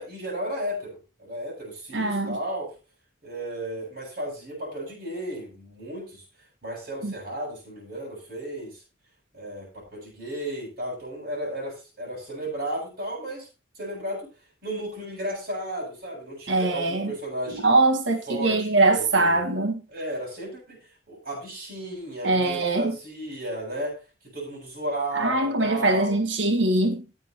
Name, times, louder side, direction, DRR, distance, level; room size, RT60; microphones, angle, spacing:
voice 1, 0.0-2.7 3.2-6.2 6.6-8.8 9.3-13.5 13.7-14.3 14.6-17.7 18.3-19.4 19.9-20.8 21.1-24.0 24.3-26.2, right 1 dB, 50° right, 7.5 m, -34 dB
voice 2, 1.9-2.4 7.0-7.1 16.5-17.1 17.5-19.8 22.2-22.9 25.1-27.0, right 2 dB, 75° right, 1.8 m, -22 dB
18.0 x 7.6 x 3.0 m
head